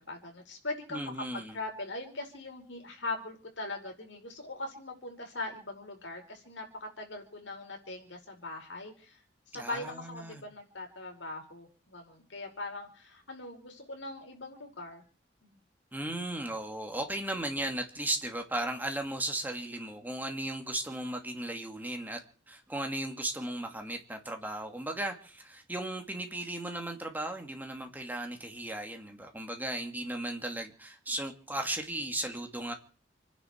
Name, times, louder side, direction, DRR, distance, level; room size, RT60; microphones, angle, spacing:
voice 1, 0.1-9.2 9.5-15.0 15.4-15.6, left 2 dB, 85° left, 2 dB, 5.2 m, -41 dB
voice 2, 0.9-1.6 9.5-10.4 15.9-22.2 22.5-32.7, right 1 dB, 10° right, 4 dB, 2.5 m, -36 dB
29.0 x 10.5 x 4.6 m, 0.42 s
head